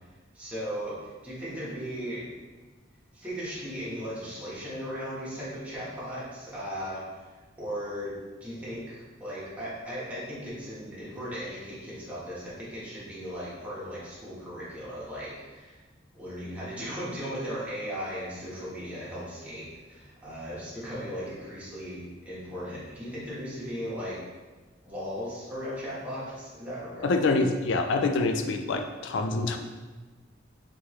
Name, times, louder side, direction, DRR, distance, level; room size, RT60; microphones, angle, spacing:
voice 1, 0.0-2.3 3.1-7.3 7.6-8.1 8.4-15.8 16.1-24.2 24.8-27.1, equal, 5° right, -9 dB, 1.2 m, -37 dB
voice 2, 27.0-29.6, left 3 dB, 65° left, 6 dB, 0.4 m, -26 dB
3.4 x 3.3 x 3.1 m, 1.3 s
head